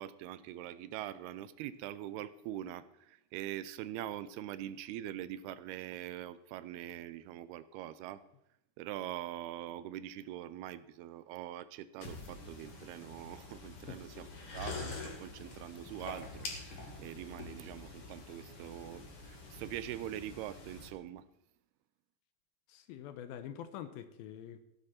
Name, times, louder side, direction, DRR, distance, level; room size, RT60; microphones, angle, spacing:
voice 1, 0.0-8.2 8.8-14.3 14.5-21.3, right 12 dB, 85° right, 15 dB, 2.5 m, -43 dB
sound 1, 12.0-20.9, left 3 dB, 40° left, 2.6 m, -46 dB
voice 2, 22.7-24.6, left 10 dB, 75° left, 11 dB, 2.4 m, -45 dB
16.0 x 11.5 x 4.3 m, 0.81 s
omnidirectional pair, 4.6 m